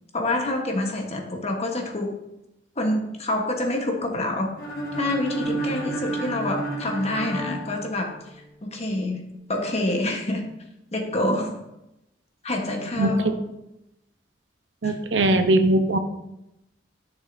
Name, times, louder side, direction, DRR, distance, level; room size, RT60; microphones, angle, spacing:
voice 1, 0.1-2.2 2.8-4.6 5.0-8.1 8.6-9.2 9.5-10.4 10.9-11.6 12.4-13.3 14.8-15.0, left 1 dB, 35° left, 2 dB, 1.2 m, -27 dB
sound 1, 4.6-8.5, right 2 dB, 55° left, 1.6 m, -31 dB
voice 2, 13.0-13.3 14.8-16.0, right 1 dB, 75° right, 7 dB, 0.8 m, -20 dB
11.0 x 6.3 x 2.7 m, 0.89 s
head